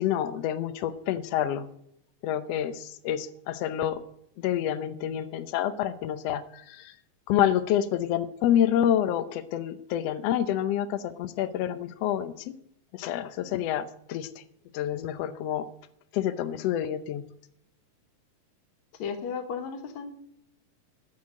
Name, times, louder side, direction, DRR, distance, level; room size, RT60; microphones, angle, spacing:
voice 1, 0.0-1.6 2.2-4.0 4.4-6.9 7.3-12.5 12.9-14.3 14.7-15.7 16.1-17.2, left 10 dB, 90° left, 10 dB, 1.4 m, -28 dB
voice 2, 19.0-20.1, left 6 dB, 60° left, 5 dB, 2.5 m, -34 dB
13.5 x 6.4 x 8.6 m, 0.75 s
omnidirectional pair, 3.9 m